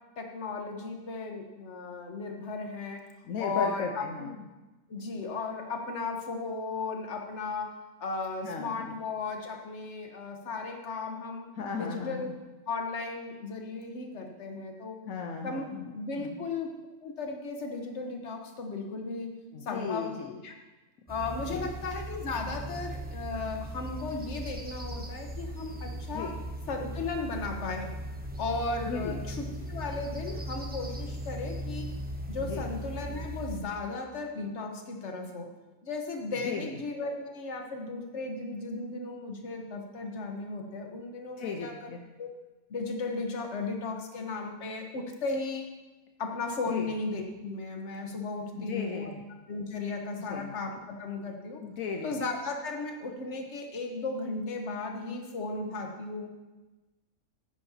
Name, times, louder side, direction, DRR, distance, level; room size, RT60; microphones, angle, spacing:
voice 1, 0.2-3.0 3.4-4.3 4.9-7.7 8.0-11.5 11.7-12.3 12.7-15.0 15.4-16.7 17.0-19.3 19.6-20.5 21.1-26.3 26.7-27.9 28.4-31.9 32.3-35.5 35.8-41.9 42.2-42.3 42.7-45.6 46.2-49.1 49.5-51.6 52.0-56.3, left 3 dB, 55° left, 3 dB, 1.5 m, -35 dB
voice 2, 3.2-4.3 8.4-8.9 11.6-12.3 15.1-15.9 16.2-16.4 19.5-20.4 21.4-21.7 26.1-26.4 28.9-29.2 32.4-32.7 36.4-36.8 41.4-42.0 46.7-46.9 48.5-49.2 50.2-50.5 51.6-52.2, left 5 dB, 75° left, 3 dB, 1.2 m, -36 dB
sound 1, 21.1-33.6, equal, 10° right, 0.7 m, -38 dB
14.5 x 9.7 x 2.8 m, 1.1 s
omnidirectional pair, 1.5 m